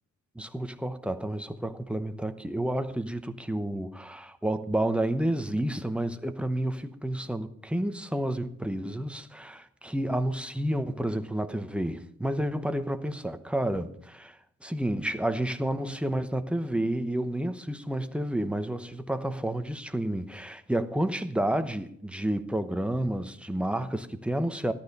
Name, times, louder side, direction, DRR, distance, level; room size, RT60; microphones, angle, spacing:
voice 1, 0.3-24.7, right 1 dB, 5° right, 0.9 m, -30 dB
14.0 x 12.0 x 5.4 m
wide cardioid pair, 140°, 29 cm